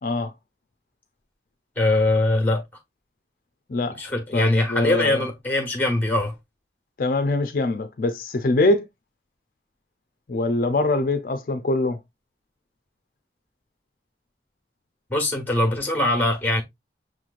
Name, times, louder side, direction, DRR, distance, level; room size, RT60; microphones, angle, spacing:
voice 1, 0.0-0.3 3.7-4.0 4.3-5.3 7.0-8.9 10.3-12.0, left 2 dB, 50° left, 0.4 m, -23 dB
voice 2, 1.8-2.6 4.0-6.3 15.1-16.6, left 1 dB, 10° left, 1.2 m, -22 dB
6.2 x 3.0 x 2.4 m
head